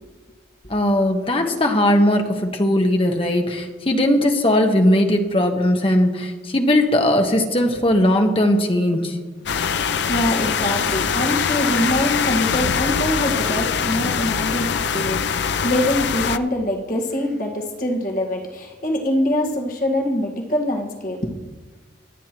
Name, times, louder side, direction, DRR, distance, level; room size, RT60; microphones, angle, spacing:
voice 1, 0.7-9.2, left 1 dB, 30° left, 3 dB, 1.2 m, -18 dB
sound 1, 9.5-16.4, left 6 dB, 65° left, 0.5 m, -23 dB
voice 2, 9.6-21.3, left 1 dB, 45° left, 0 dB, 1.6 m, -24 dB
25.0 x 9.4 x 3.0 m, 1.3 s
head